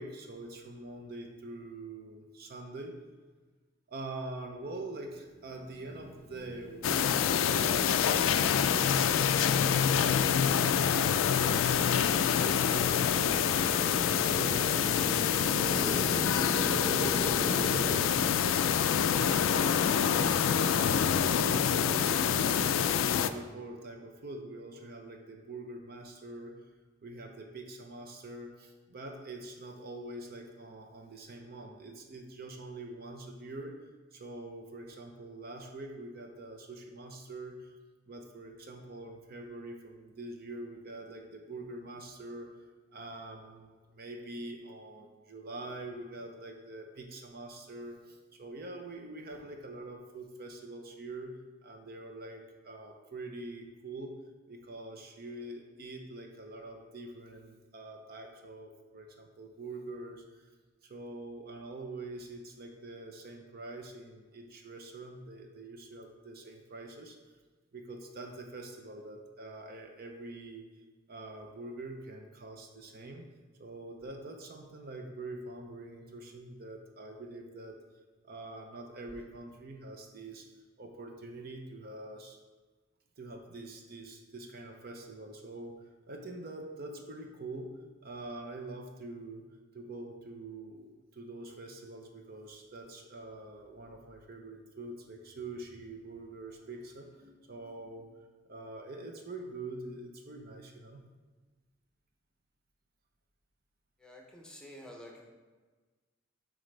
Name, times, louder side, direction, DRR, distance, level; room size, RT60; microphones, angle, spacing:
voice 1, 0.0-3.0 3.9-8.2 8.5-14.6 15.6-19.7 20.6-26.6 27.0-33.8 34.1-37.7 38.1-42.5 42.9-51.3 51.6-54.1 54.5-60.5 60.8-67.2 67.7-70.7 71.1-73.3 73.6-77.8 78.2-80.5 80.8-82.4 83.2-85.8 86.1-87.7 88.0-89.4 89.7-101.0, right 2 dB, 50° right, 3 dB, 0.6 m, -45 dB
Motorcycle, 5.3-18.0, left 1 dB, 30° left, 0.6 m, -40 dB
sound 1, 6.8-23.3, left 8 dB, 85° left, 0.3 m, -26 dB
voice 2, 104.0-105.3, left 1 dB, 5° left, 0 dB, 0.8 m, -49 dB
7.7 x 5.0 x 3.3 m, 1.3 s
head